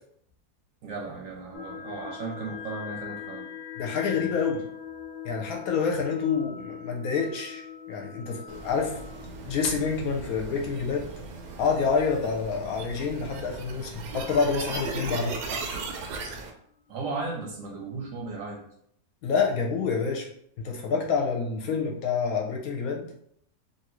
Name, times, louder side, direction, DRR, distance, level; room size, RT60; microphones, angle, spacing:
voice 1, 0.8-3.5 16.9-18.6, right 3 dB, 65° right, 0 dB, 0.9 m, -35 dB
sound 1, 1.5-11.1, left 8 dB, 50° left, 0.6 m, -41 dB
voice 2, 3.8-4.7 5.2-9.0 9.4-11.1 11.6-15.4 19.2-20.3 20.6-23.0, left 5 dB, 70° left, 1 dB, 1.0 m, -27 dB
sound 2, 8.5-16.5, right 3 dB, 90° right, 1.2 m, -37 dB
2.9 x 2.5 x 3.0 m, 0.68 s
omnidirectional pair, 1.7 m